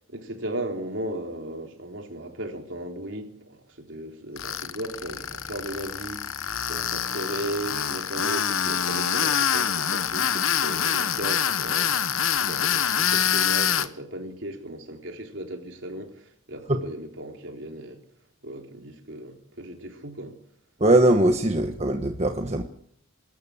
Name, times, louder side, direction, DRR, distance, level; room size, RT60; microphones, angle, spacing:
voice 1, 0.1-12.0 12.4-18.0 18.4-20.4, right 1 dB, 65° right, 3.8 m, -36 dB
Tools, 4.4-13.9, left 8 dB, 80° left, 1.1 m, -25 dB
voice 2, 20.8-22.6, right 1 dB, 30° right, 1.3 m, -21 dB
25.5 x 13.5 x 8.6 m
head